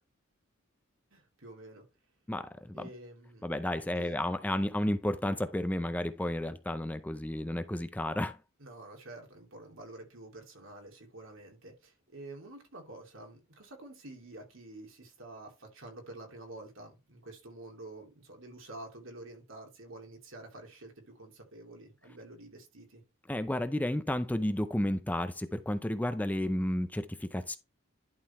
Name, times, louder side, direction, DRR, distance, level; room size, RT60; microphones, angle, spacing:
voice 1, 1.1-1.8 2.7-3.4 4.0-4.2 8.6-23.0, right 2 dB, 75° right, 2.7 m, -48 dB
voice 2, 2.3-2.9 3.4-8.4 23.3-27.6, left 1 dB, 10° left, 0.4 m, -32 dB
11.0 x 3.8 x 4.2 m
head